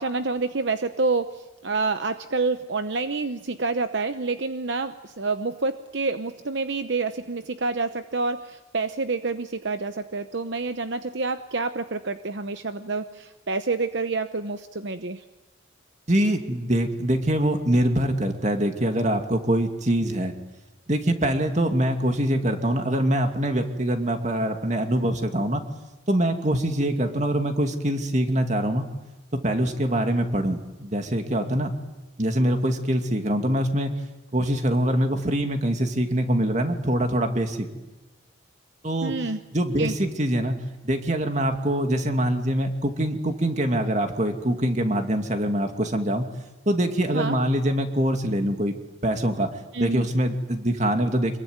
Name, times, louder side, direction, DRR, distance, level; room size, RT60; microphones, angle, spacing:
voice 1, 0.0-15.2 39.0-39.4 39.8-39.9 47.1-47.4 49.7-50.1, right 3 dB, 65° right, 9 dB, 0.9 m, -28 dB
voice 2, 16.1-20.3 20.9-25.6 26.1-28.9 29.3-31.7 32.2-33.9 34.3-37.6 38.8-39.1 39.5-40.6 40.8-46.3 46.7-48.7 49.0-49.5 49.8-51.4, right 1 dB, 35° right, 5 dB, 2.5 m, -24 dB
26.0 x 22.5 x 9.4 m, 1.1 s
head